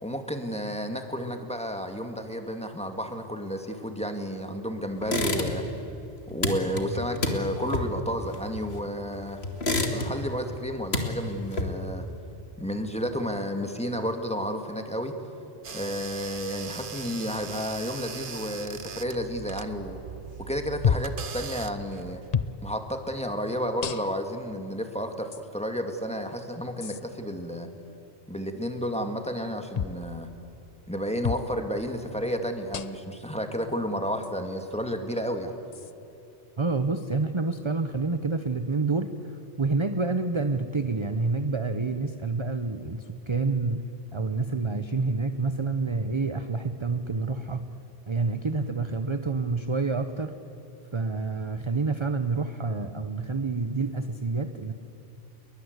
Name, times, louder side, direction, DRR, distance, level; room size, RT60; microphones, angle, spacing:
voice 1, 0.0-5.6 6.3-9.4 9.9-12.0 12.6-15.1 15.7-20.0 20.4-22.2 22.6-27.7 28.3-30.3 30.9-35.5, equal, 5° left, 5 dB, 2.0 m, -31 dB
sound 1, 5.0-5.8 6.1-9.0 9.4-10.4 10.7-12.0, left 2 dB, 65° left, 2.6 m, -29 dB
sound 2, 15.6-22.3, right 6 dB, 50° right, 1.2 m, -40 dB
sound 3, 20.8-21.2 22.3-22.6 23.8-24.3 25.3-25.4 26.8-27.0 29.7-30.0 31.2-31.5 32.7-33.1 34.2-34.3 35.7-35.9, left 7 dB, 40° left, 0.7 m, -29 dB
voice 2, 36.6-43.8 44.1-47.7 48.1-50.3 50.9-54.7, right 3 dB, 30° right, 9 dB, 0.8 m, -28 dB
29.5 x 22.5 x 8.1 m, 2.9 s
omnidirectional pair, 1.2 m